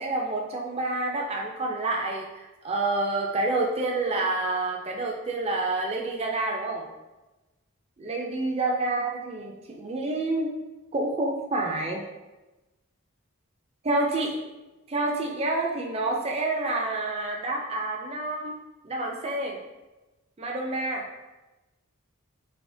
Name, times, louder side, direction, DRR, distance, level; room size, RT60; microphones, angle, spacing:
voice 1, 0.0-6.9 8.0-10.5 10.9-12.0 13.8-14.4 14.9-18.6 18.8-19.6 20.4-21.0, right 2 dB, 30° right, -1 dB, 0.4 m, -28 dB
4.2 x 3.4 x 2.6 m, 1.1 s
head